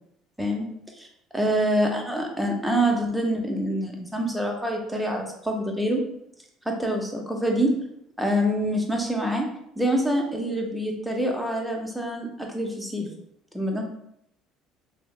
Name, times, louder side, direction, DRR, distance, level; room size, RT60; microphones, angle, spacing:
voice 1, 1.3-6.0 6.7-7.7 8.2-9.5 9.8-13.1 13.5-13.8, equal, ahead, 1 dB, 0.6 m, -26 dB
3.1 x 2.0 x 2.4 m, 0.75 s
supercardioid pair, 90°, 0 cm